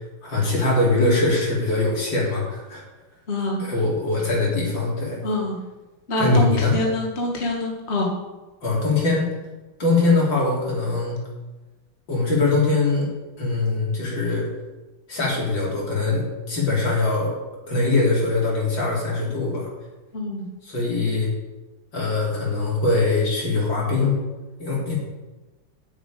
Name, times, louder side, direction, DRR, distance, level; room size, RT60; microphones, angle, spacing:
voice 1, 0.2-2.8 3.6-5.2 6.2-6.7 8.6-9.2 9.8-11.2 12.1-13.1 13.4-14.5 15.1-17.3 17.7-19.7 20.6-21.3 21.9-24.2 24.6-24.9, left 3 dB, 70° left, -3 dB, 4.3 m, -22 dB
voice 2, 3.3-3.6 5.2-5.6 6.1-8.1 20.1-20.5, left 1 dB, 35° left, -1 dB, 2.0 m, -25 dB
10.5 x 7.1 x 9.1 m, 1.2 s
omnidirectional pair, 2.2 m